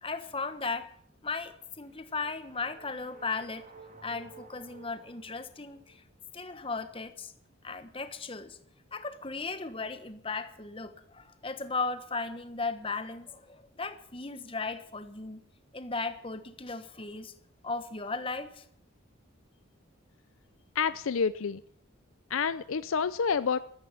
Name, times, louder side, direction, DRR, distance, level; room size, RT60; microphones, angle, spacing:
voice 1, 0.0-0.9 1.2-3.7 4.0-6.0 6.3-7.3 7.6-8.6 8.9-15.4 15.7-17.3 17.6-18.6, left 4 dB, 25° left, 10 dB, 1.2 m, -36 dB
sound 1, 1.6-6.0, right 4 dB, 35° right, 2.4 m, -54 dB
voice 2, 20.8-21.6 22.3-23.6, left 6 dB, 85° left, 14 dB, 0.5 m, -28 dB
14.0 x 13.5 x 7.2 m, 0.66 s
head